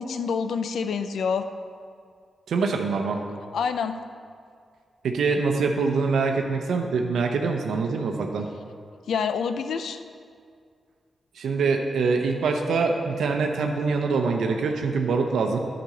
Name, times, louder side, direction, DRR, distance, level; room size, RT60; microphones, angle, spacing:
voice 1, 0.0-1.4 3.5-4.0 9.1-10.0, left 6 dB, 85° left, 9 dB, 0.5 m, -27 dB
voice 2, 2.5-3.2 5.0-8.5 11.4-15.6, right 4 dB, 90° right, 3 dB, 0.8 m, -24 dB
10.5 x 5.2 x 7.8 m, 2.2 s
cardioid pair, 90°, 0 cm